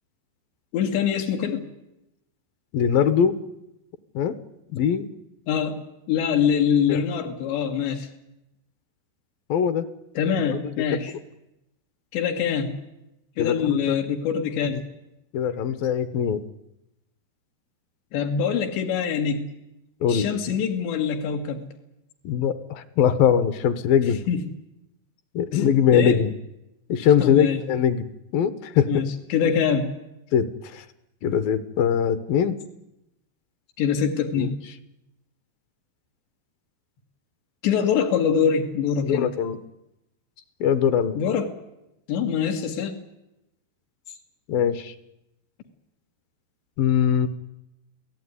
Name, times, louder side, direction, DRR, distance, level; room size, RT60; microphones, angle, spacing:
voice 1, 0.7-1.7 4.8-4.9 5.5-8.1 10.2-11.1 12.1-12.8 13.4-14.8 18.1-19.6 20.1-21.7 24.3-24.4 25.5-25.6 25.9-26.2 27.2-27.6 28.9-29.9 33.8-34.6 37.6-39.3 41.2-41.5 42.1-43.0, left 7 dB, 85° left, 3 dB, 4.1 m, -24 dB
voice 2, 2.7-3.4 4.1-4.4 4.7-5.1 6.9-7.0 9.5-9.9 10.5-10.6 13.4-14.0 14.7-14.8 15.3-16.4 20.0-20.3 22.2-24.2 25.3-26.3 26.9-28.1 28.3-28.9 30.3-30.8 31.2-32.6 34.4-34.5 39.0-39.6 40.6-41.2 44.5-44.9 46.8-47.3, left 8 dB, 70° left, 13 dB, 2.6 m, -22 dB
27.5 x 18.0 x 9.7 m, 0.91 s
omnidirectional pair, 4.8 m